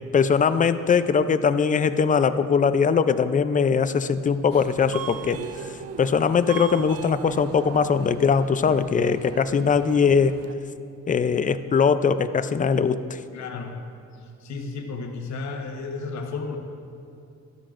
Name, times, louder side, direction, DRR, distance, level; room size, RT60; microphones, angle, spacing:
voice 1, 0.1-5.4 6.0-10.4 11.1-13.2, left 6 dB, 25° left, 12 dB, 0.4 m, -21 dB
Subway metro underground, 4.5-10.5, right 10 dB, 50° right, 0.4 m, -39 dB
voice 2, 13.3-13.8 14.2-16.6, left 4 dB, 65° left, 3 dB, 1.2 m, -33 dB
13.0 x 12.5 x 2.5 m, 2.6 s
cardioid pair, 90°, 30 cm